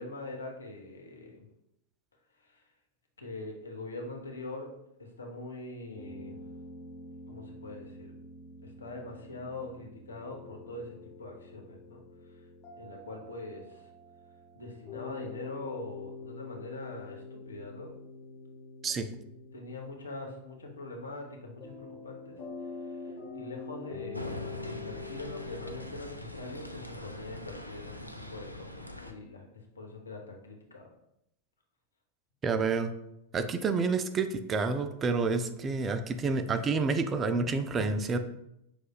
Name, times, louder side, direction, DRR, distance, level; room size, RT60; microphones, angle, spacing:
voice 1, 0.0-1.4 2.5-2.6 3.2-4.7 5.0-6.4 7.3-8.1 8.6-12.0 12.7-13.8 14.5-18.0 19.5-22.4 23.0-29.5 29.8-30.9, left 2 dB, 75° left, 1 dB, 0.8 m, -43 dB
sound 1, 6.0-25.9, left 4 dB, 35° left, 1.1 m, -46 dB
sound 2, 24.1-29.1, left 1 dB, 90° left, 0.3 m, -43 dB
voice 2, 32.4-32.9 33.3-38.2, right 4 dB, 25° right, 8 dB, 0.3 m, -29 dB
5.8 x 3.2 x 2.2 m, 0.81 s
figure-of-eight pair, 90°, 0 cm